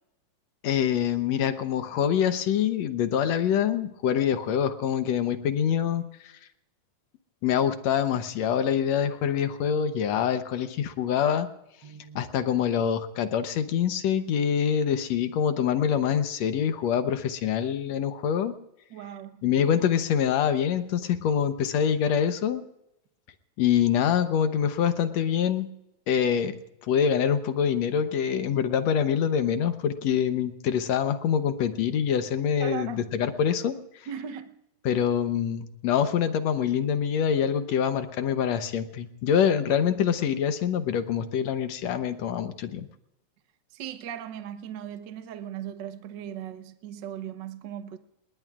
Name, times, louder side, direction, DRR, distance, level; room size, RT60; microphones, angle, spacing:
voice 1, 0.6-6.0 7.4-11.5 12.2-18.5 19.4-22.6 23.6-25.7 26.1-26.5 26.9-33.8 34.9-42.9, left 8 dB, 70° left, 2.0 m, -25 dB
voice 2, 11.8-12.2 18.9-19.4 32.6-33.1 34.1-34.5 43.7-48.0, right 9 dB, 60° right, 1.1 m, -38 dB
28.5 x 20.0 x 2.4 m
omnidirectional pair, 3.4 m